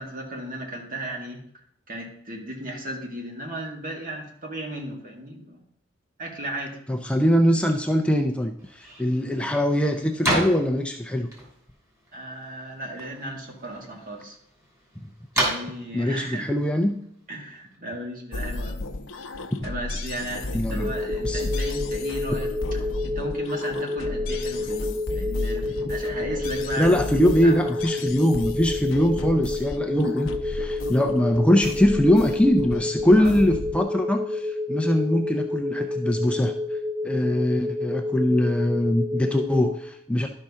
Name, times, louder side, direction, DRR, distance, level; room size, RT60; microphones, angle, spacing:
voice 1, 0.0-1.5 1.9-5.6 6.2-6.8 12.1-14.4 15.4-16.5 17.3-18.9 19.6-22.8 23.0-27.5 33.2-33.3, right 1 dB, 45° right, 0 dB, 1.9 m, -35 dB
voice 2, 6.9-11.3 15.0-15.1 15.9-17.0 19.5-19.7 20.5-20.9 21.2-21.4 26.8-36.5 37.0-40.3, equal, 5° left, 3 dB, 0.4 m, -22 dB
sound 1, 8.6-17.8, right 1 dB, 15° right, 2.8 m, -33 dB
sound 2, 18.3-33.8, left 2 dB, 85° left, 0.7 m, -33 dB
sound 3, 20.8-39.7, left 2 dB, 80° right, 2.2 m, -30 dB
12.0 x 5.6 x 3.6 m, 0.70 s
head